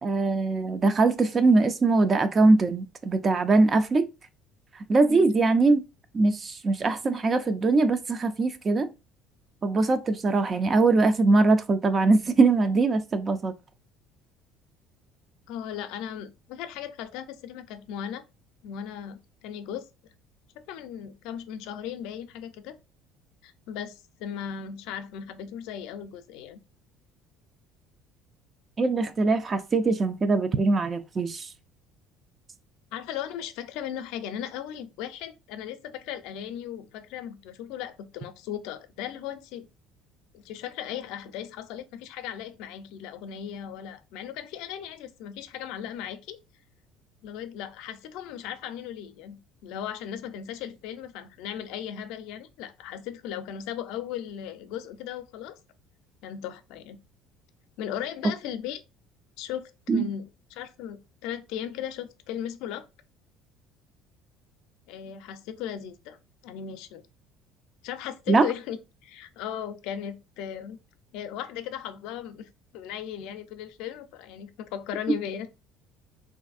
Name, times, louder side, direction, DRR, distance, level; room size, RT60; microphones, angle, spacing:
voice 1, 0.0-4.1 4.9-5.8 6.1-8.9 9.6-13.5 28.8-31.5 59.9-60.1 68.3-68.5, right 3 dB, 30° right, 0.3 m, -22 dB
voice 2, 15.5-18.2 18.6-19.9 20.7-22.8 23.4-26.6 32.9-39.7 40.3-46.4 47.2-55.6 56.2-57.0 57.8-58.8 59.4-62.9 64.9-66.2 66.4-67.0 67.8-68.8 69.0-70.8 71.1-75.5, left 9 dB, 75° left, 0.4 m, -37 dB
3.3 x 2.5 x 2.4 m
cardioid pair, 110°, 0 cm